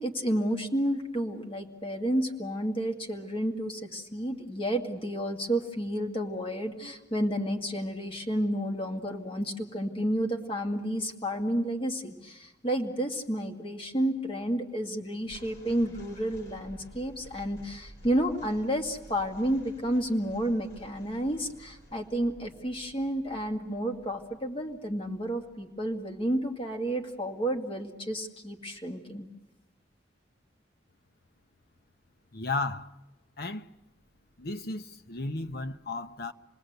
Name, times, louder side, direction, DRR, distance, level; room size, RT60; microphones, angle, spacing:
voice 1, 0.0-29.3, right 1 dB, 30° left, 2.1 m, -31 dB
sound 1, 15.2-26.5, right 1 dB, 75° left, 4.0 m, -53 dB
voice 2, 32.3-32.9 33.4-33.7 34.4-36.3, left 3 dB, 55° left, 1.0 m, -34 dB
29.0 x 20.0 x 8.0 m
head